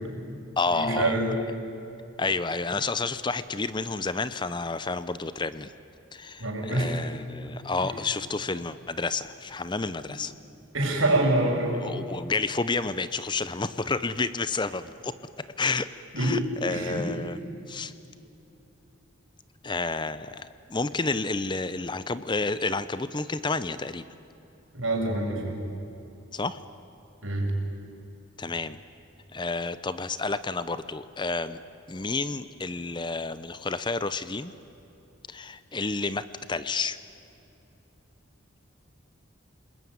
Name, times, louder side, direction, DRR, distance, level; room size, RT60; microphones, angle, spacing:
voice 1, 0.0-0.4 0.7-1.3 6.4-7.0 10.1-10.2 10.7-11.9 16.1-16.4 16.7-17.1 24.7-25.6 27.2-27.5, right 1 dB, 75° right, 1 dB, 6.3 m, -26 dB
voice 2, 0.6-1.3 2.2-5.7 6.1-10.3 11.8-15.9 16.2-17.4 17.7-17.9 19.6-24.0 26.3-26.6 28.4-28.8 29.3-31.6 31.9-34.5 35.3-37.0, left 3 dB, 20° left, 14 dB, 0.7 m, -30 dB
29.0 x 20.5 x 9.6 m, 3.0 s
head